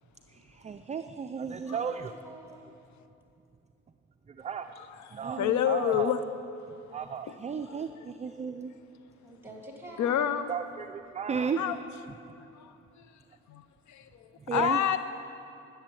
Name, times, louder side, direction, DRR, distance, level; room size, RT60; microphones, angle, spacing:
voice 1, 0.3-2.1 4.3-4.7 5.1-6.2 6.9-8.7 10.5-11.8 14.4-14.8, right 6 dB, 25° right, 8 dB, 0.4 m, -34 dB
voice 2, 1.7-2.6 9.2-10.4, right 1 dB, 5° right, 0 dB, 2.5 m, -47 dB
voice 3, 4.8-6.2 7.3-7.4 7.7-7.8 10.0-10.5 11.6-11.8 12.5-13.1 13.5-15.0, left 10 dB, 70° left, 11 dB, 0.6 m, -29 dB
12.0 x 7.1 x 8.9 m, 2.7 s
cardioid pair, 90°, 30 cm